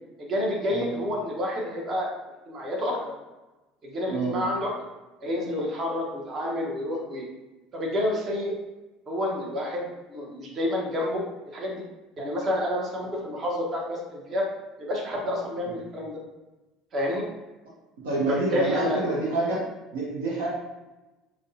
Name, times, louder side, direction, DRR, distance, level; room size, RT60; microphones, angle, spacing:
voice 1, 0.2-2.1 2.5-3.1 3.8-4.7 5.2-7.2 7.7-8.5 9.1-11.2 11.5-11.8 12.2-14.5 14.8-16.2 16.9-17.2 18.3-19.0, left 1 dB, 40° right, -1 dB, 1.0 m, -29 dB
voice 2, 18.0-19.6 19.9-20.5, right 2 dB, 75° right, -4 dB, 0.8 m, -27 dB
6.2 x 2.3 x 2.7 m, 1.1 s
hypercardioid pair, 65°, 0 cm